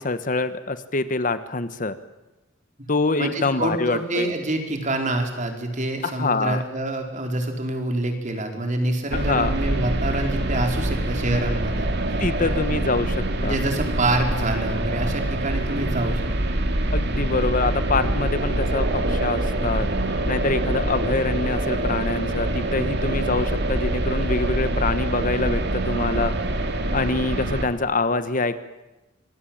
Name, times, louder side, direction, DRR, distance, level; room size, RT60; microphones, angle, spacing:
voice 1, 0.0-2.0 2.9-4.3 6.0-6.6 9.1-9.5 12.2-13.6 16.9-19.9 20.3-26.3 26.9-28.6, left 3 dB, 40° left, 12 dB, 1.1 m, -25 dB
voice 2, 3.2-12.5 13.4-16.2 16.5-16.6, right 2 dB, 40° right, 4 dB, 4.2 m, -26 dB
sound 1, 9.1-27.7, right 1 dB, 60° right, 2.4 m, -25 dB
26.5 x 21.0 x 8.8 m, 1.0 s
head